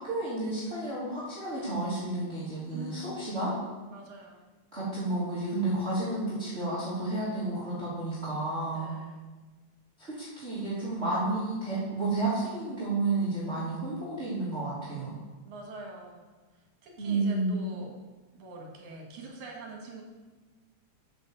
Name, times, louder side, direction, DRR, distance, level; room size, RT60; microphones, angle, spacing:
voice 1, 0.0-3.5 4.7-8.9 10.0-15.2 17.0-17.5, right 2 dB, 20° right, -10 dB, 3.0 m, -31 dB
voice 2, 2.7-3.3 3.9-4.5 8.7-9.3 11.9-12.0 13.5-13.9 15.4-16.3 16.8-17.9 18.4-20.0, right 2 dB, 75° right, 0 dB, 3.2 m, -44 dB
7.8 x 6.9 x 7.1 m, 1.3 s
omnidirectional pair, 3.4 m